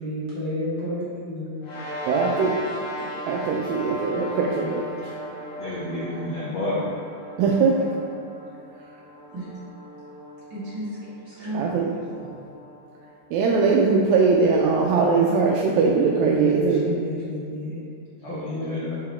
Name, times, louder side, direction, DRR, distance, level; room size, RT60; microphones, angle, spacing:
voice 1, 0.0-1.5 3.0-3.2 4.1-4.7 9.3-9.5 10.5-10.9 11.2-11.9 16.2-17.8 18.3-18.9, equal, 50° right, -11 dB, 1.4 m, -31 dB
sound 1, 1.6-14.4, equal, 70° left, 3.3 m, -37 dB
voice 2, 2.1-2.5 3.3-5.1 7.4-7.8 11.5-12.3 13.3-16.8, right 4 dB, 85° right, -1 dB, 2.1 m, -21 dB
voice 3, 5.6-6.8 18.2-19.0, left 1 dB, 90° left, -8 dB, 1.4 m, -30 dB
6.8 x 3.9 x 4.2 m, 2.5 s
omnidirectional pair, 4.5 m